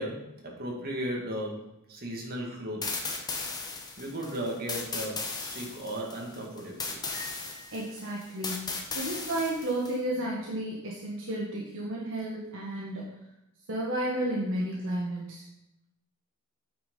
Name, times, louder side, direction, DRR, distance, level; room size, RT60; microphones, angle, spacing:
voice 1, 0.0-2.9 4.0-7.0, equal, 45° right, -1 dB, 2.2 m, -36 dB
sound 1, 2.8-10.0, left 4 dB, 20° left, 1.2 m, -36 dB
Piano, 7.1-8.6, equal, 15° right, 3.7 m, -49 dB
voice 2, 7.7-13.1 13.7-15.5, right 1 dB, 60° right, -4 dB, 1.6 m, -32 dB
8.7 x 6.1 x 5.5 m, 0.88 s
head